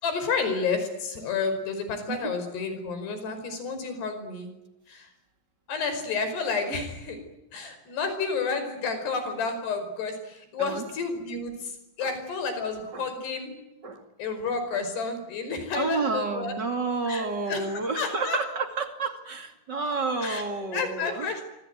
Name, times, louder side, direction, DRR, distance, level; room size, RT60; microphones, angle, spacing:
voice 1, 0.0-4.5 4.9-5.1 5.7-7.2 7.5-13.5 14.2-16.5 17.1-18.4 20.2-20.4 20.7-21.5, left 4 dB, 55° left, 9 dB, 7.1 m, -30 dB
voice 2, 15.7-21.3, right 4 dB, 35° right, 6 dB, 1.7 m, -30 dB
25.5 x 25.0 x 9.3 m, 0.92 s
omnidirectional pair, 5.7 m